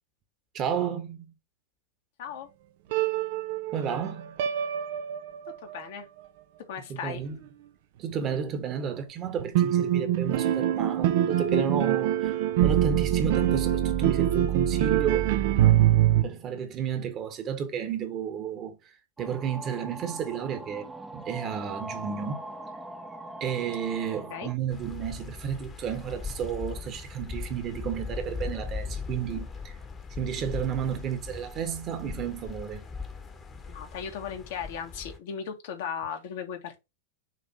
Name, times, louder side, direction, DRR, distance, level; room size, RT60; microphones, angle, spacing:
voice 1, 0.5-1.3 3.7-4.4 6.9-7.4 8.0-15.3 16.0-18.8 19.2-22.4 23.4-29.7 30.2-32.8, right 7 dB, 30° right, 1.4 m, -32 dB
sound 1, 2.9-5.7 9.3-16.2, right 11 dB, 50° right, 0.7 m, -24 dB
voice 2, 5.6-6.1 6.7-7.2 24.3-24.5 33.7-36.8, left 7 dB, 55° left, 1.5 m, -36 dB
sound 2, 19.2-24.5, right 2 dB, 10° right, 0.9 m, -41 dB
sound 3, 24.7-35.2, left 5 dB, 20° left, 1.3 m, -39 dB
6.7 x 3.2 x 4.6 m
figure-of-eight pair, 90°, 0 cm